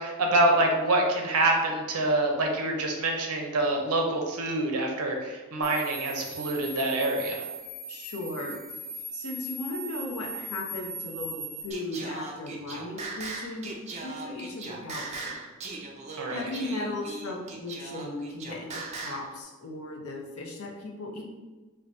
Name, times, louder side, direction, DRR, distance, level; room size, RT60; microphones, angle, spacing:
voice 1, 0.0-7.4 16.2-16.4, right 2 dB, 85° right, 1 dB, 0.7 m, -26 dB
sound 1, 5.6-11.6, right 1 dB, 25° left, 1.3 m, -39 dB
voice 2, 7.9-8.6 9.1-13.7 14.0-15.4 16.3-21.2, left 2 dB, 80° left, -1 dB, 0.7 m, -36 dB
Singing, 11.7-19.3, right 3 dB, 30° right, 0.4 m, -39 dB
4.6 x 2.2 x 2.6 m, 1.3 s
head